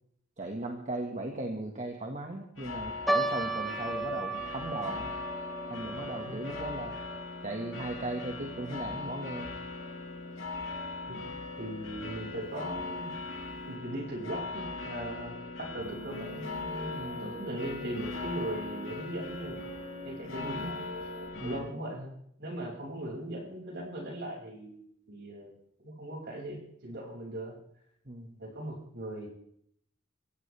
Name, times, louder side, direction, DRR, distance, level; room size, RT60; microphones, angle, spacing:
voice 1, 0.4-5.1 5.7-6.9 7.4-9.5 16.9-17.3 21.4-21.7 28.1-28.4, right 2 dB, 40° right, 2 dB, 1.8 m, -37 dB
sound 1, 2.6-21.6, left 3 dB, 80° left, 6.2 m, -40 dB
sound 2, 3.1-9.6 9.8-9.9 10.7-11.0 11.6-11.7 12.0-12.2, right 2 dB, ahead, 0.9 m, -36 dB
voice 2, 11.6-13.1 13.7-19.6 20.0-20.8 21.4-25.5 25.8-27.6 28.4-29.3, right 1 dB, 60° right, -1 dB, 6.4 m, -39 dB
sound 3, 15.8-21.3, left 1 dB, 80° right, 6.7 m, -44 dB
24.5 x 16.0 x 3.5 m, 0.71 s
head